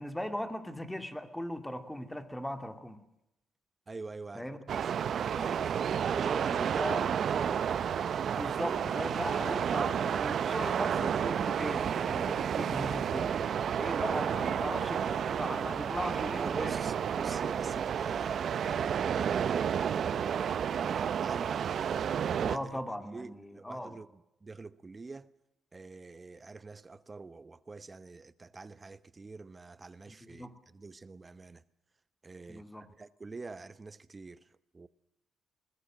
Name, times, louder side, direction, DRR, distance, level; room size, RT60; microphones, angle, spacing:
voice 1, 0.0-3.0 4.3-4.6 6.7-7.0 8.2-16.9 22.5-24.0 30.1-30.5 32.5-32.9, left 1 dB, 5° left, 2.4 m, -38 dB
voice 2, 3.9-5.1 5.3-7.6 16.4-22.0 22.3-25.3 25.7-31.6 32.2-34.9, right 3 dB, 25° right, 1.0 m, -45 dB
sound 1, 4.7-22.6, right 8 dB, 60° right, 0.8 m, -31 dB
sound 2, 8.9-12.2, left 5 dB, 85° left, 5.0 m, -60 dB
21.5 x 20.5 x 7.6 m
cardioid pair, 90°, 0 cm